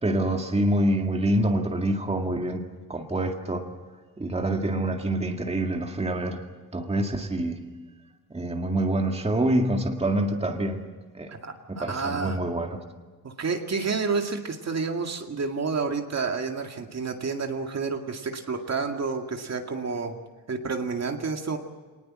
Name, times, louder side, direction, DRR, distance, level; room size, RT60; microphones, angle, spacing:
voice 1, 0.0-2.6 2.9-3.7 4.2-6.4 6.7-7.6 8.3-10.8 11.1-11.3 11.7-12.8, right 1 dB, 15° right, 3 dB, 2.1 m, -26 dB
voice 2, 11.3-12.4 13.2-20.2 20.5-21.6, right 4 dB, 45° right, 4 dB, 2.2 m, -29 dB
26.0 x 19.5 x 7.6 m, 1.3 s
wide cardioid pair, 140°, 36 cm